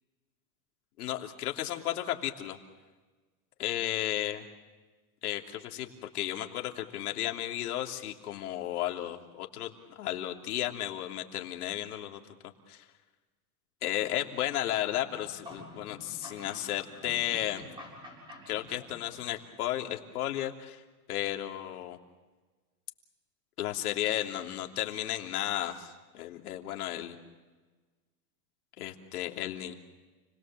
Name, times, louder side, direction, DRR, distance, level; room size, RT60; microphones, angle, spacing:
voice 1, 1.0-2.6 3.6-4.4 5.2-12.2 12.7-12.8 13.8-17.7 18.5-20.8 21.1-22.0 23.6-27.2 28.8-29.7, left 13 dB, 85° left, 3 dB, 3.1 m, -34 dB
sound 1, 14.9-19.6, left 2 dB, 10° right, 7.6 m, -49 dB
30.0 x 21.5 x 7.5 m, 1.3 s
supercardioid pair, 170°, 44 cm